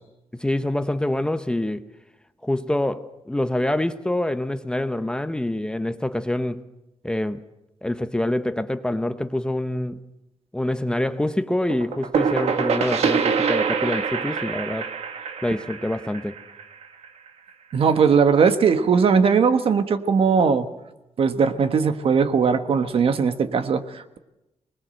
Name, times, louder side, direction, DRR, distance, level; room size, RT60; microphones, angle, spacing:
voice 1, 0.3-1.9 2.4-6.7 7.0-7.4 7.8-10.1 10.5-14.9 15.4-16.4, left 1 dB, 10° left, 0.8 m, -26 dB
sound 1, 11.7-17.3, right 6 dB, 75° right, 1.8 m, -25 dB
voice 2, 17.7-20.7 21.2-24.2, right 6 dB, 60° right, 1.4 m, -19 dB
25.5 x 20.5 x 7.8 m
wide cardioid pair, 130°, 11 cm